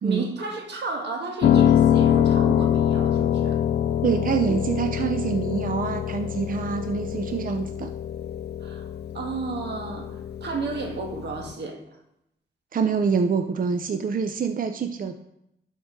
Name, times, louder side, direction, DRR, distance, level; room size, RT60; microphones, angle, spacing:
voice 1, 0.0-3.6 8.6-8.9 9.1-11.8, right 4 dB, 90° right, 2 dB, 1.5 m, -32 dB
Piano, 1.4-11.5, left 10 dB, 70° left, 0.4 m, -24 dB
voice 2, 4.0-7.9 12.7-15.2, right 6 dB, 55° right, 7 dB, 0.6 m, -26 dB
12.0 x 4.7 x 3.7 m, 0.81 s
cardioid pair, 65°, 17 cm